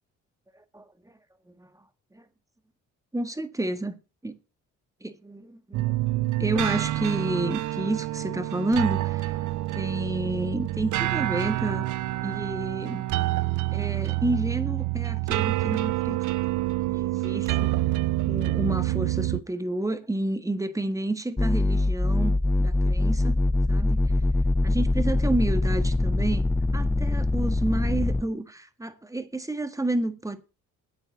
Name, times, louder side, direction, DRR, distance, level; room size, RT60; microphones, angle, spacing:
voice 1, 0.7-1.1 1.6-1.7 2.1-2.3 3.1-4.0 4.2-4.4 5.0-9.4 9.7-11.9 12.2-13.0 13.7-16.3 16.9-17.8 18.3-23.4 23.7-24.1 24.6-26.4 26.7-30.4, right 2 dB, 10° right, 1.7 m, -30 dB
sound 1, 5.7-19.4, right 16 dB, 75° right, 0.6 m, -27 dB
sound 2, 21.4-28.2, left 2 dB, 10° left, 0.7 m, -23 dB
9.0 x 8.7 x 7.2 m
cardioid pair, 90°, 30 cm